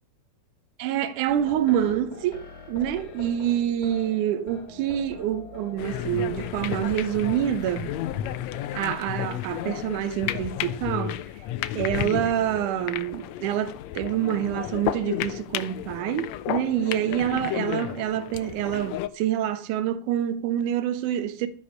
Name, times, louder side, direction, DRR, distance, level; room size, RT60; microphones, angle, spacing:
voice 1, 0.8-8.0 8.7-11.2 11.8-21.5, right 11 dB, 75° right, 2.3 m, -27 dB
sound 1, 1.3-8.9, left 4 dB, 60° left, 3.9 m, -44 dB
sound 2, 5.8-19.1, left 12 dB, 80° left, 1.5 m, -32 dB
14.0 x 5.5 x 6.4 m
omnidirectional pair, 3.8 m